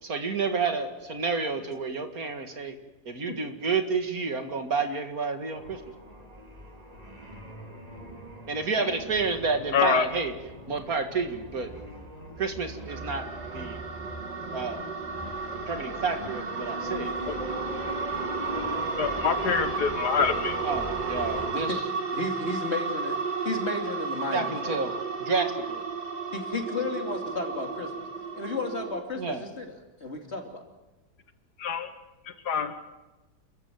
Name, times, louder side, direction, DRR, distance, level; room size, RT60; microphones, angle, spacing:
voice 1, 0.0-2.7 3.1-5.8 8.5-10.3 10.7-11.7 12.4-13.3 13.5-13.8 14.5-14.8 15.7-17.2 20.6-21.8 24.3-25.8 29.2-29.4, right 4 dB, 60° right, 6 dB, 2.5 m, -30 dB
sound 1, 5.6-21.5, equal, 25° right, 3.4 m, -39 dB
voice 2, 9.7-10.1 19.0-20.6 31.6-31.9 32.5-32.8, left 6 dB, 80° left, 10 dB, 2.0 m, -25 dB
sound 2, 12.9-29.0, right 5 dB, 85° right, 2.8 m, -33 dB
voice 3, 21.4-21.8 22.1-24.8 26.3-28.1 28.3-29.7 30.0-30.6, left 3 dB, 40° left, 3 dB, 3.1 m, -33 dB
28.5 x 14.5 x 9.3 m, 1.1 s
omnidirectional pair, 1.7 m